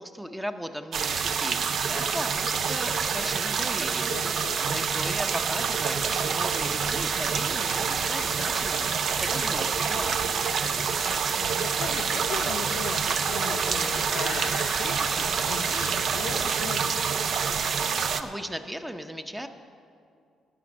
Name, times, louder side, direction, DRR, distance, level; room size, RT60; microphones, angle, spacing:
voice 1, 0.0-4.1 4.6-10.4 18.2-19.5, equal, 5° right, 7 dB, 0.7 m, -37 dB
sound 1, 0.9-18.2, right 6 dB, 60° right, 0.6 m, -27 dB
voice 2, 4.1-4.8 11.3-17.3, left 7 dB, 80° left, 6 dB, 0.7 m, -38 dB
sound 2, 7.7-16.5, left 4 dB, 40° left, 0.7 m, -42 dB
11.5 x 5.9 x 8.6 m, 2.3 s
cardioid pair, 90°, 0 cm